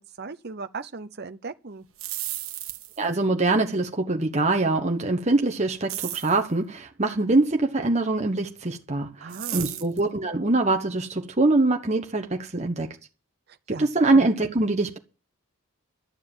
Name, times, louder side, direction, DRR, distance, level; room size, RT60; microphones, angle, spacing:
voice 1, 0.0-1.9 9.2-9.9 13.7-14.1, right 4 dB, 45° right, 0.7 m, -38 dB
sound 1, 1.8-3.1 5.9-6.4 9.3-10.0, right 14 dB, 65° right, 1.3 m, -33 dB
voice 2, 3.0-13.0 13.8-15.0, right 2 dB, 30° right, 1.1 m, -23 dB
12.0 x 7.4 x 9.0 m
head